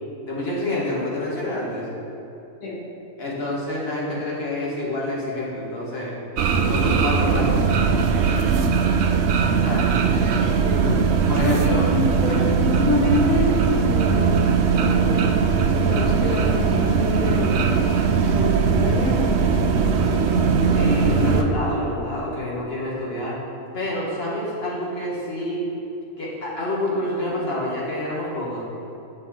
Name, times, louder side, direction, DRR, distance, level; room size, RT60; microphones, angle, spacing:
voice 1, 0.2-1.9 3.2-6.2 6.6-7.7 9.6-10.0 10.9-11.0 11.3-11.9 12.2-12.5 20.7-23.4 23.7-25.7 26.2-28.6, left 1 dB, 45° left, -5 dB, 1.8 m, -27 dB
sound 1, 6.4-21.4, right 5 dB, 65° right, 0.8 m, -20 dB
voice 2, 10.6-11.1 11.4-14.4 14.7-15.4 15.8-17.9 18.2-21.2, left 1 dB, 70° left, -5 dB, 1.6 m, -27 dB
8.9 x 5.4 x 4.3 m, 3.0 s
omnidirectional pair, 1.5 m